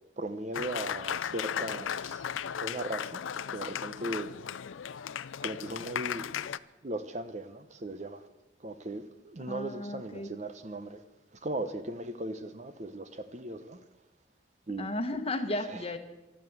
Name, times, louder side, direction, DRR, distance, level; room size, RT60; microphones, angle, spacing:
voice 1, 0.2-2.2 2.6-3.2 3.5-4.3 5.4-6.2 6.8-8.2 8.6-11.0 11.3-13.8 14.7-14.9 15.7-15.8, right 1 dB, 35° right, 10 dB, 0.8 m, -38 dB
Applause, 0.5-6.6, left 8 dB, 85° left, 0.5 m, -36 dB
voice 2, 9.5-10.3 14.8-16.0, left 1 dB, 30° left, 7 dB, 1.2 m, -34 dB
13.0 x 12.5 x 8.0 m, 1.1 s
head